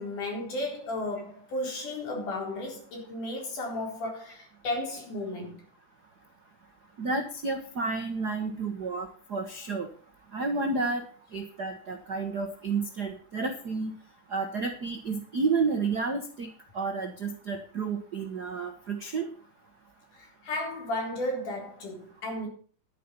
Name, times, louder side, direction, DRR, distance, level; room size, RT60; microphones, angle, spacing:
voice 1, 0.0-5.6 20.1-22.5, left 1 dB, 75° left, 5.5 m, -34 dB
voice 2, 7.0-9.9 10.3-11.0 11.3-14.0 14.3-19.3, right 4 dB, 60° right, 1.1 m, -31 dB
11.0 x 10.0 x 5.3 m
omnidirectional pair, 3.6 m